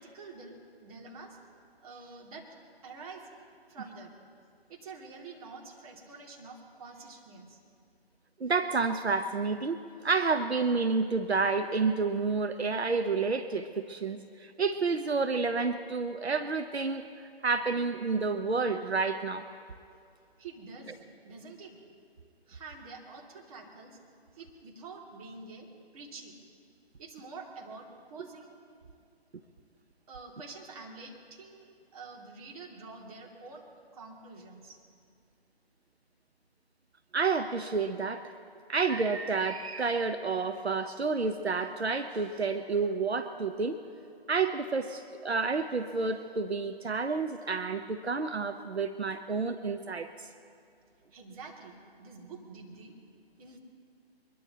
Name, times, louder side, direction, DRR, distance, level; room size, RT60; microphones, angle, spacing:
voice 1, 0.0-1.4 1.8-2.5 2.8-3.3 3.7-4.1 4.7-7.6 20.4-21.8 22.5-24.0 24.3-25.7 25.9-26.4 27.0-28.5 30.1-33.7 33.9-34.8 51.1-53.0 53.4-53.6, right 3 dB, 35° right, -1 dB, 2.4 m, -47 dB
voice 2, 8.4-9.8 10.0-17.1 17.4-19.5 37.1-38.3 38.7-43.8 44.3-50.3, right 4 dB, 85° right, 9 dB, 0.9 m, -30 dB
23.0 x 21.5 x 2.9 m, 2.4 s
figure-of-eight pair, 145°, 31 cm